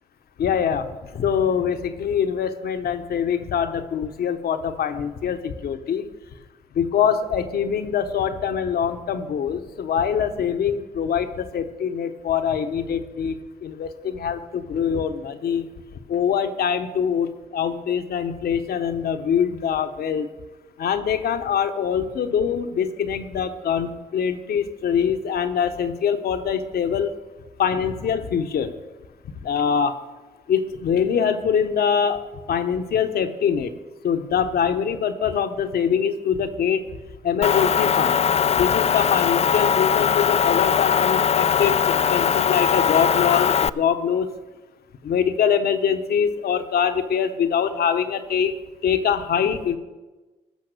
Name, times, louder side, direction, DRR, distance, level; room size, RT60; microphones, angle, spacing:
voice 1, 0.4-0.9 1.1-6.1 6.7-13.3 13.6-15.6 16.1-20.3 20.8-27.1 27.6-28.7 29.4-29.9 30.5-32.2 32.5-33.7 34.0-36.8 37.2-38.2 38.5-44.3 45.0-48.5 48.8-49.8, left 7 dB, 70° left, 8 dB, 1.0 m, -23 dB
Motor vehicle (road) / Engine, 37.4-43.7, left 7 dB, 40° left, 0.4 m, -20 dB
15.0 x 5.9 x 6.6 m, 1.1 s
supercardioid pair, 45°, 17 cm